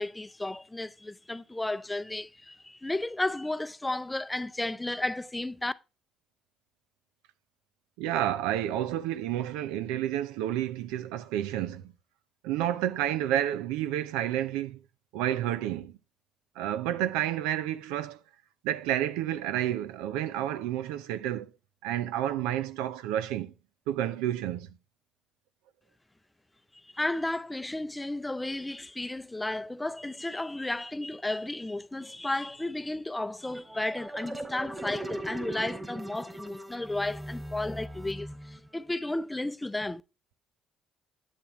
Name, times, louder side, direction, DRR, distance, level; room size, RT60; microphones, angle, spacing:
voice 1, 0.0-5.7 26.9-40.0, left 2 dB, 15° left, 0.5 m, -33 dB
voice 2, 8.0-11.9 12.4-14.8 15.1-16.0 16.6-18.2 18.6-21.5 21.8-23.5 23.9-24.7, right 12 dB, 90° right, 0.5 m, -30 dB
sound 1, 33.4-38.8, right 1 dB, 15° right, 2.2 m, -39 dB
9.7 x 6.9 x 3.0 m
supercardioid pair, 65°, 0 cm